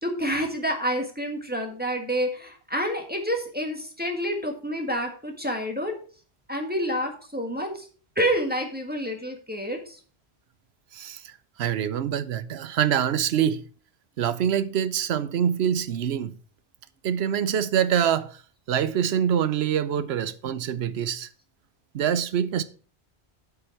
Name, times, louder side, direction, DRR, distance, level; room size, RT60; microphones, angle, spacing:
voice 1, 0.0-5.9 6.5-7.9 8.1-10.0, equal, 10° right, 1.6 m, -28 dB
voice 2, 10.9-11.3 11.6-13.6 14.2-16.4 17.0-18.4 18.7-21.3 21.9-22.6, right 9 dB, 90° right, 0.9 m, -25 dB
7.9 x 5.8 x 5.9 m
omnidirectional pair, 1.0 m